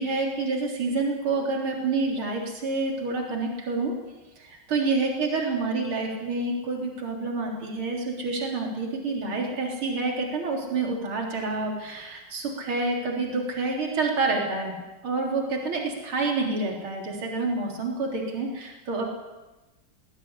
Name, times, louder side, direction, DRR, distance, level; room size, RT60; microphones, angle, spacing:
voice 1, 0.0-3.9 4.4-19.0, right 3 dB, 80° right, 0 dB, 4.5 m, -28 dB
21.0 x 18.0 x 9.9 m, 1.1 s
omnidirectional pair, 2.3 m